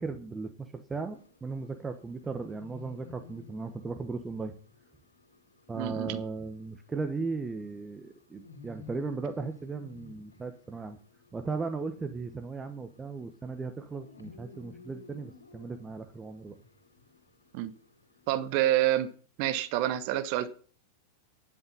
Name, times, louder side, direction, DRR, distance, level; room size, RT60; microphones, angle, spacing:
voice 1, 0.0-4.5 5.7-11.0 11.3-16.6, right 4 dB, 15° right, 1.3 m, -37 dB
sound 1, 0.9-18.4, left 4 dB, 80° left, 3.3 m, -55 dB
voice 2, 5.7-6.2 17.5-17.7 18.3-19.1 19.4-20.5, right 13 dB, 45° right, 1.4 m, -28 dB
11.0 x 11.0 x 5.6 m
figure-of-eight pair, 90°, 0 cm